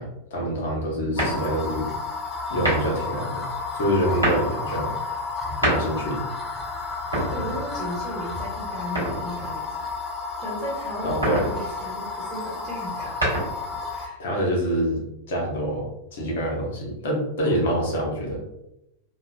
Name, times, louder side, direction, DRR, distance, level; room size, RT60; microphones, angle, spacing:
voice 1, 0.0-1.9 2.5-3.5 3.7-4.9 5.6-6.2 11.0-11.5 14.2-15.0 15.3-18.4, equal, 55° left, -2 dB, 0.9 m, -26 dB
sound 1, 1.1-1.7 2.5-3.1 4.0-4.5 5.4-6.2 7.0-7.9 8.9-9.6 11.0-11.6 12.9-13.8, right 1 dB, 90° right, 1.4 m, -26 dB
sound 2, 1.2-14.1, left 4 dB, 20° left, 0.4 m, -32 dB
voice 2, 7.3-9.9 10.4-13.2 13.9-14.2, equal, 25° right, -6 dB, 1.0 m, -35 dB
2.9 x 2.1 x 2.3 m, 0.87 s
figure-of-eight pair, 90°, 0 cm